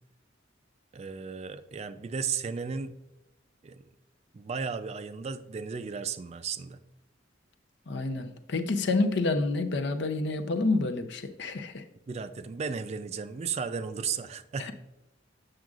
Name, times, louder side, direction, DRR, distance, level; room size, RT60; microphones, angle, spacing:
voice 1, 0.9-2.9 3.6-3.8 4.3-6.8 12.1-14.7, right 6 dB, 35° right, 12 dB, 0.3 m, -34 dB
voice 2, 7.9-11.8 14.6-14.7, left 3 dB, 65° left, 9 dB, 0.6 m, -28 dB
7.5 x 6.3 x 2.4 m, 0.91 s
head